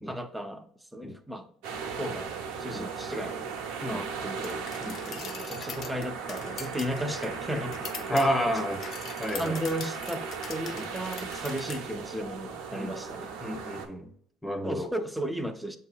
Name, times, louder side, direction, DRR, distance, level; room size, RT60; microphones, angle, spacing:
voice 1, 0.1-1.5 2.0-2.3 2.6-3.4 3.8-4.6 5.1-8.1 8.5-8.9 9.3-13.4 14.6-15.8, equal, 5° right, 0.5 m, -35 dB
sound 1, 1.6-13.9, right 6 dB, 85° right, 0.8 m, -37 dB
sound 2, 4.4-11.8, left 7 dB, 55° left, 0.5 m, -43 dB
voice 2, 8.1-8.8 9.2-9.6 10.7-10.8 12.7-12.9 13.4-14.1 14.4-14.9, equal, 10° left, 0.9 m, -30 dB
7.4 x 2.8 x 2.3 m
supercardioid pair, 95°, 0 cm